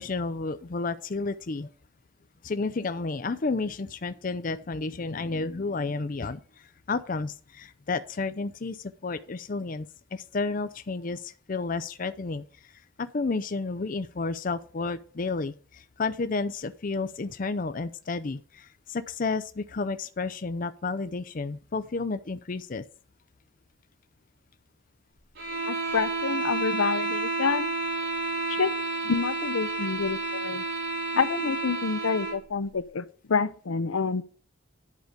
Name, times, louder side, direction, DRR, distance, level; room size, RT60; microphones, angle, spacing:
voice 1, 0.0-1.7 2.4-22.8, left 3 dB, 40° left, 0.5 m, -31 dB
sound 1, 25.4-32.4, right 2 dB, 60° right, 5.2 m, -30 dB
voice 2, 25.7-27.7 28.5-28.7 29.0-30.6 31.1-34.2, left 5 dB, 80° left, 0.6 m, -28 dB
10.5 x 5.0 x 6.5 m
head